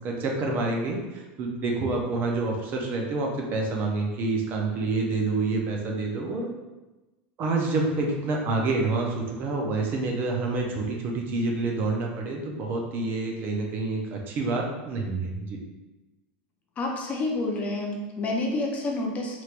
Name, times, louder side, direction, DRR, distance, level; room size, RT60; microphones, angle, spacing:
voice 1, 0.0-6.5 7.4-15.6, right 3 dB, 35° right, 0 dB, 0.5 m, -28 dB
voice 2, 16.8-19.4, left 2 dB, 25° left, 0 dB, 0.5 m, -29 dB
3.2 x 2.9 x 2.4 m, 1.1 s
supercardioid pair, 145°, 6 cm